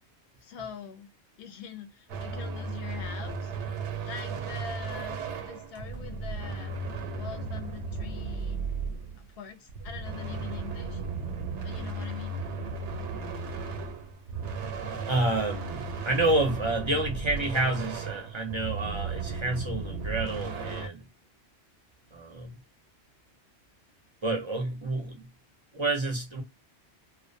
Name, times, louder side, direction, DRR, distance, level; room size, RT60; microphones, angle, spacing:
voice 1, 0.4-1.1 1.4-3.5 4.0-6.8 7.1-8.7 9.2-11.0 11.6-12.4, left 7 dB, 65° left, 0.7 m, -43 dB
sound 1, 2.1-9.3 9.7-20.9, right 4 dB, 90° right, 0.9 m, -35 dB
voice 2, 14.9-21.0 22.1-22.5 24.2-25.3 25.7-26.4, right 2 dB, 40° right, 0.4 m, -29 dB
2.4 x 2.1 x 2.5 m
omnidirectional pair, 1.1 m